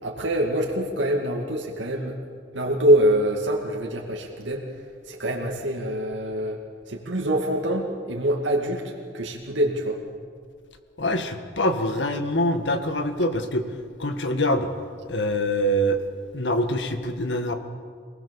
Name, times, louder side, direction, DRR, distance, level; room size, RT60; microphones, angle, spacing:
voice 1, 0.0-2.2 2.5-4.7 5.1-6.6 6.9-10.0, right 1 dB, 90° right, -1 dB, 2.4 m, -24 dB
voice 2, 11.0-13.6 14.0-14.7 15.0-16.1 16.3-17.5, equal, 75° left, 7 dB, 1.8 m, -24 dB
26.0 x 19.0 x 7.1 m, 2.1 s
head